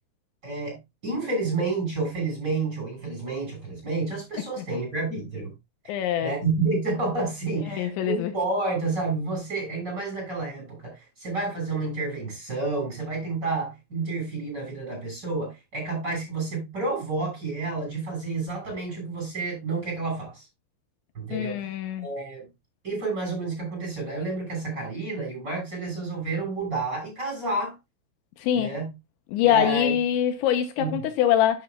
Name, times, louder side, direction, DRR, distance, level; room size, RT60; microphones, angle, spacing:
voice 1, 0.4-0.8 1.0-5.5 6.2-20.5 21.1-22.4 22.8-27.7 28.5-28.9 29.4-29.9 30.8-30.9, right 3 dB, 20° right, 6.4 m, -30 dB
voice 2, 5.9-6.3 7.7-8.3 21.3-22.1 28.4-28.8 29.3-31.6, left 10 dB, 80° left, 3.1 m, -24 dB
11.0 x 9.1 x 2.3 m
omnidirectional pair, 5.4 m